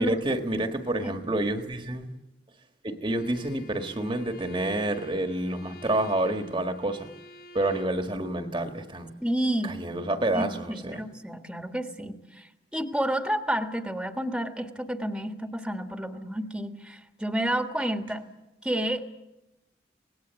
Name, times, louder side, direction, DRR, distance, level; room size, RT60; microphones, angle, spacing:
voice 1, 0.0-2.1 2.8-7.1 7.5-9.1 9.6-11.0, right 1 dB, 25° right, 6 dB, 1.6 m, -28 dB
Bowed string instrument, 3.1-8.0, equal, 55° left, 7.9 m, -48 dB
voice 2, 9.2-9.8 10.3-18.3 18.6-19.1, right 1 dB, 5° right, 5 dB, 1.6 m, -30 dB
25.5 x 19.5 x 8.2 m, 0.95 s
head